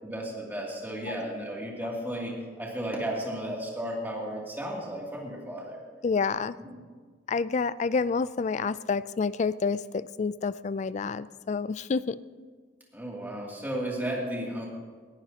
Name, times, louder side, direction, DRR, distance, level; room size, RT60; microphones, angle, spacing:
voice 1, 0.0-5.8 6.6-6.8 12.9-14.7, right 1 dB, 10° right, -3 dB, 2.6 m, -34 dB
voice 2, 6.0-6.6 7.3-12.2, left 5 dB, 40° left, 16 dB, 0.3 m, -28 dB
19.5 x 14.5 x 2.9 m, 1.5 s
head